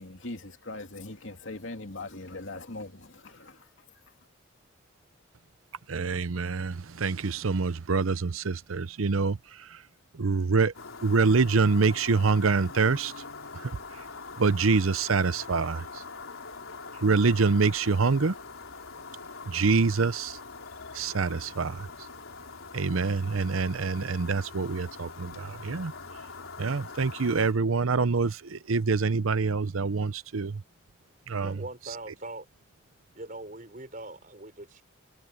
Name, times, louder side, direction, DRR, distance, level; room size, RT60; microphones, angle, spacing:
voice 1, 0.0-3.7, left 2 dB, 65° left, 2.6 m, -40 dB
voice 2, 5.9-9.4 10.2-10.7 11.0-13.1 14.4-15.8 17.0-18.3 19.5-20.4 20.9-21.9 22.7-25.9 26.6-30.6 31.3-31.5, right 4 dB, 85° right, 0.7 m, -25 dB
sound 1, 10.7-27.5, left 4 dB, 85° left, 4.2 m, -43 dB
voice 3, 31.4-32.5 33.1-34.8, right 2 dB, 40° right, 5.1 m, -41 dB
head